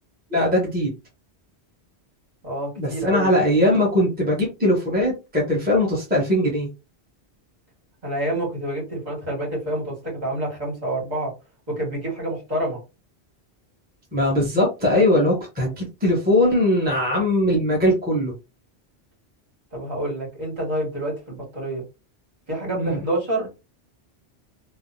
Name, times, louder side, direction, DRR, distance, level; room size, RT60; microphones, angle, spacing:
voice 1, 0.3-0.9 2.8-6.7 14.1-18.3 22.7-23.0, left 1 dB, 10° right, -3 dB, 0.9 m, -20 dB
voice 2, 2.4-3.3 8.0-11.3 11.7-12.8 19.7-21.8 22.5-23.6, right 1 dB, 40° right, -3 dB, 1.7 m, -28 dB
3.3 x 2.1 x 2.6 m, 0.27 s
omnidirectional pair, 1.1 m